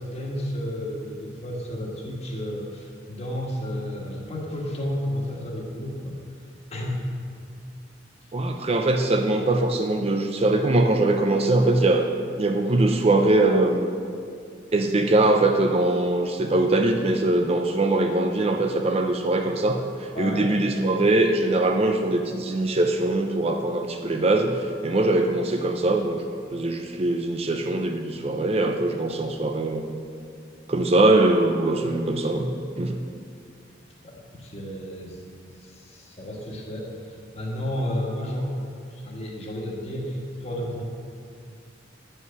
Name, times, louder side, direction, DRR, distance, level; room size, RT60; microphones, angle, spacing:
voice 1, 0.0-6.1 6.7-7.0 20.1-20.5 34.0-35.2 35.6-40.8, left 1 dB, 35° left, -2 dB, 1.5 m, -32 dB
voice 2, 8.3-12.1 12.4-13.9 14.7-26.2 26.5-30.0 30.7-32.5 32.8-33.0, right 2 dB, 30° right, 4 dB, 0.5 m, -22 dB
9.3 x 5.5 x 6.8 m, 2.3 s
head